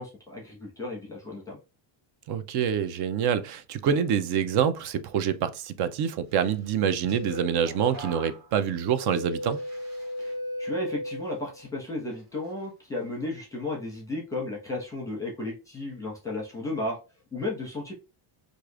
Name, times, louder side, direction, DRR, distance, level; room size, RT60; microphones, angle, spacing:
voice 1, 0.0-1.6 10.2-10.3 10.6-17.0 17.3-17.9, left 2 dB, 5° left, 1.1 m, -34 dB
voice 2, 2.3-9.6, right 8 dB, 55° right, 0.5 m, -26 dB
sound 1, 6.6-11.7 12.1-12.5, left 1 dB, 30° right, 1.9 m, -37 dB
4.6 x 2.6 x 2.4 m
cardioid pair, 155°, 49 cm